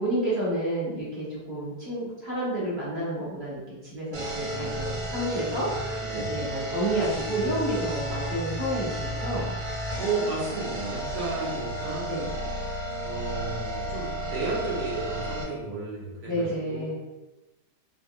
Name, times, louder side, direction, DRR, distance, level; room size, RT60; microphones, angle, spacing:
voice 1, 0.0-6.0 6.3-9.5 12.1-12.3 16.3-17.0, right 1 dB, 30° right, -9 dB, 1.1 m, -30 dB
sound 1, 4.1-15.4, right 1 dB, 90° right, 1.9 m, -32 dB
voice 2, 6.0-6.4 10.0-12.1 13.0-17.0, right 3 dB, 70° right, -5 dB, 1.6 m, -33 dB
3.6 x 2.3 x 2.6 m, 1.0 s
omnidirectional pair, 1.9 m